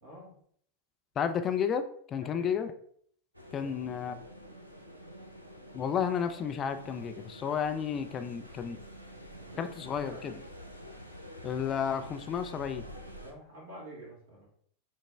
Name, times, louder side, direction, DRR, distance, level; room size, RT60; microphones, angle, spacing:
voice 1, 0.0-0.4 2.2-2.5 3.6-3.8 9.4-10.4 13.2-14.5, right 1 dB, 60° right, -4 dB, 1.7 m, -48 dB
voice 2, 1.2-2.7 3.5-4.2 5.7-8.8 9.6-10.3 11.4-12.9, left 7 dB, 25° left, 8 dB, 0.4 m, -32 dB
sound 1, 3.3-13.3, equal, 85° right, 0.5 m, -48 dB
5.9 x 2.0 x 3.4 m, 0.62 s
figure-of-eight pair, 90°, 0 cm